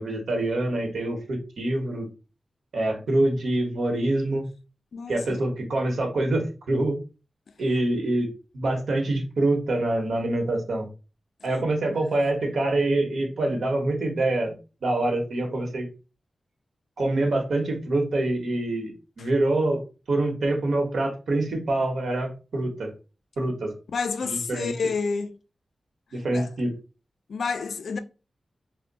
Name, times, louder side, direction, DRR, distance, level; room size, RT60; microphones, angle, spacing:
voice 1, 0.0-2.1 2.7-4.4 5.1-7.0 7.6-8.3 8.5-10.9 11.4-14.5 14.8-15.9 17.0-19.8 20.1-22.9 23.4-23.7 24.2-24.7 26.1-26.7, right 2 dB, 80° right, 0.8 m, -25 dB
voice 2, 4.9-5.4 19.2-19.3 23.9-25.4 26.3-26.5 27.3-28.0, left 5 dB, 85° left, 0.3 m, -29 dB
2.6 x 2.0 x 3.8 m
wide cardioid pair, 120°, 0 cm